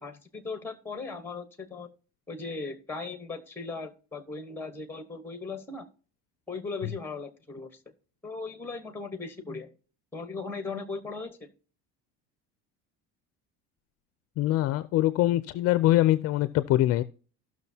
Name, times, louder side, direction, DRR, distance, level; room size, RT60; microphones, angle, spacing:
voice 1, 0.0-1.9 2.3-5.9 6.5-7.8 8.2-9.7 10.1-11.5, left 4 dB, 5° left, 9 dB, 1.1 m, -38 dB
voice 2, 14.4-17.0, left 15 dB, 45° left, 13 dB, 0.5 m, -23 dB
15.5 x 6.2 x 2.7 m, 0.39 s
cardioid pair, 155°, 33 cm